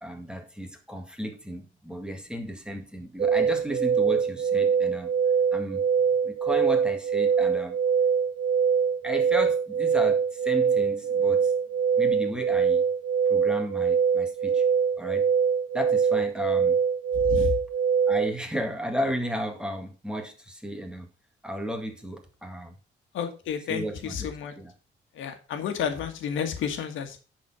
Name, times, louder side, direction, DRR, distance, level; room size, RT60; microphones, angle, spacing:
voice 1, 0.0-5.1 5.5-5.8 6.2-7.8 9.0-11.5 12.0-12.9 13.3-14.6 15.0-15.3 15.7-16.8 18.1-21.1 21.4-22.7 23.7-24.7, equal, 5° right, 4 dB, 2.0 m, -34 dB
sound 1, 3.2-18.3, right 6 dB, 35° right, 0.8 m, -23 dB
voice 2, 17.2-17.5 23.1-24.5 25.2-27.2, left 7 dB, 80° left, 7 dB, 1.5 m, -31 dB
10.5 x 4.4 x 5.6 m, 0.35 s
cardioid pair, 90°, 20 cm